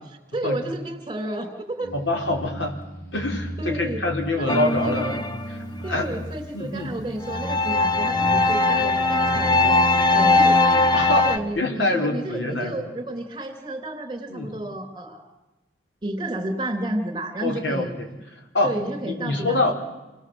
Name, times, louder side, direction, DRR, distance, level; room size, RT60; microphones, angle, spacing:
voice 1, 0.3-1.9 3.6-4.0 4.4-4.5 4.8-5.2 5.8-10.8 11.2-15.3 16.0-17.9 18.6-19.7, right 1 dB, 25° right, 5 dB, 3.4 m, -31 dB
sound 1, 1.8-9.7, equal, 45° left, 4.6 m, -38 dB
voice 2, 1.9-2.8 3.1-5.6 5.9-6.2 6.5-6.9 10.9-12.8 14.3-14.5 17.4-18.1 18.5-18.8 19.0-19.7, left 2 dB, 90° left, 2 dB, 4.6 m, -25 dB
sound 2, 4.5-5.9 7.2-11.4, left 2 dB, 20° left, 1.0 m, -20 dB
29.0 x 19.5 x 8.1 m, 1.1 s
head